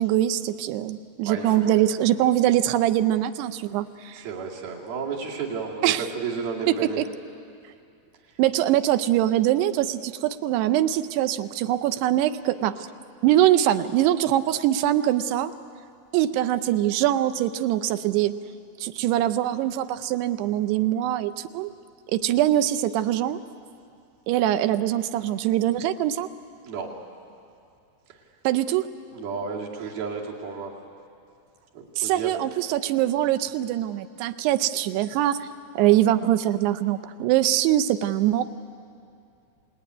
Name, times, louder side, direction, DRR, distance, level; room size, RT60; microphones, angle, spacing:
voice 1, 0.0-4.3 5.8-6.1 6.7-7.1 8.4-12.9 13.2-15.5 16.1-18.4 18.8-21.7 22.1-23.4 24.3-26.3 28.4-28.9 32.0-35.5 35.8-38.4, right 13 dB, 80° right, 12 dB, 2.7 m, -23 dB
voice 2, 1.2-1.7 4.1-7.0 26.6-26.9 29.1-30.7 31.7-32.4, right 5 dB, 60° right, -1 dB, 4.2 m, -32 dB
28.5 x 19.5 x 9.6 m, 2.5 s
omnidirectional pair, 4.9 m